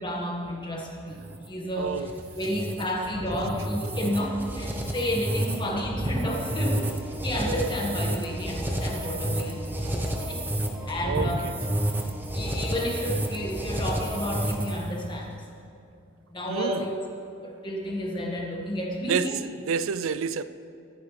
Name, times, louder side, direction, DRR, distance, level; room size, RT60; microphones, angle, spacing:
voice 1, 0.0-1.2 1.5-2.1 2.4-6.9 7.2-10.4 10.9-11.5 12.3-15.3 16.3-17.0 17.4-19.3, equal, 25° left, 1.8 m, -31 dB
sound 1, 1.1-15.0, right 1 dB, 10° right, 1.0 m, -30 dB
voice 2, 1.8-2.1 7.4-7.7 10.0-10.1 11.0-11.6 16.5-16.8 19.1-20.4, right 6 dB, 75° right, 0.4 m, -29 dB
24.0 x 9.6 x 3.4 m
head